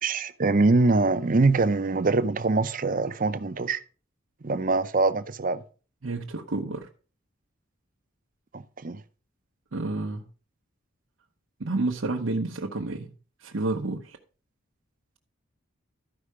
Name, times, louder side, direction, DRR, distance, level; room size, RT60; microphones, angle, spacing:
voice 1, 0.0-3.8 4.4-5.6 8.5-9.0, right 3 dB, 40° right, 0.6 m, -23 dB
voice 2, 6.0-6.9 9.7-10.2 11.6-13.1 13.4-14.2, right 2 dB, 75° right, 1.0 m, -30 dB
13.0 x 5.5 x 4.9 m
head